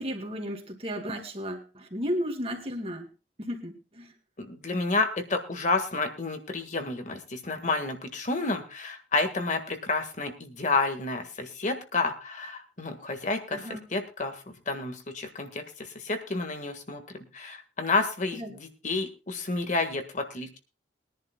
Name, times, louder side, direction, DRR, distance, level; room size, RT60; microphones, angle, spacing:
voice 1, 0.0-3.1 3.4-4.1 13.5-13.8 18.4-18.6, equal, 35° right, 3 dB, 2.4 m, -34 dB
voice 2, 4.4-17.0 17.3-20.6, left 3 dB, 45° left, 6 dB, 1.6 m, -30 dB
22.5 x 10.5 x 2.2 m, 0.31 s
head